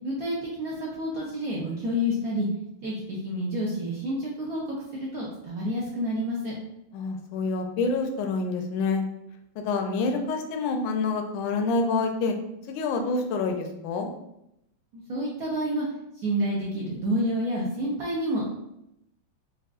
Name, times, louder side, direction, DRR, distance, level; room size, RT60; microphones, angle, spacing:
voice 1, 0.0-2.5 2.8-6.5 14.9-15.8 16.2-18.5, equal, 70° right, -5 dB, 0.9 m, -29 dB
voice 2, 6.9-9.0 9.6-12.3 12.7-14.1, left 3 dB, 75° left, 4 dB, 1.2 m, -27 dB
4.7 x 2.3 x 2.4 m, 0.82 s
omnidirectional pair, 2.2 m